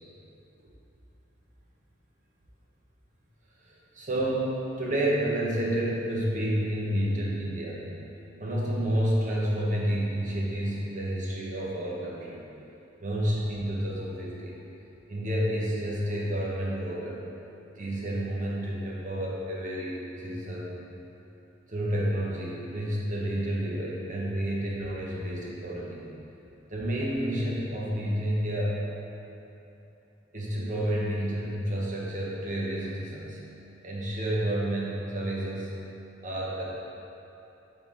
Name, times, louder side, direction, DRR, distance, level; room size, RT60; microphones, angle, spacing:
voice 1, 3.6-7.8 8.4-12.4 13.0-14.6 15.1-17.2 17.8-20.7 21.7-26.0 26.7-28.8 30.3-33.4 33.8-35.7 36.2-36.6, right 1 dB, 45° right, -5 dB, 1.2 m, -30 dB
7.9 x 3.9 x 4.0 m, 3.0 s
head